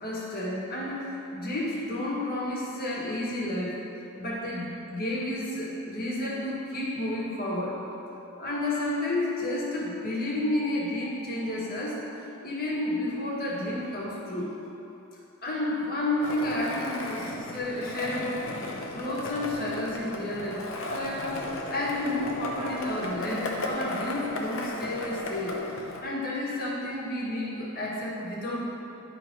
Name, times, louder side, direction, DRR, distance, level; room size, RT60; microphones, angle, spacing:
voice 1, 0.0-3.8 4.2-7.8 8.4-12.1 12.4-14.6 15.4-28.6, left 1 dB, 45° left, -4 dB, 1.5 m, -31 dB
Skateboard, 16.2-26.0, left 2 dB, 65° left, 0.9 m, -35 dB
11.0 x 4.0 x 4.5 m, 2.9 s
head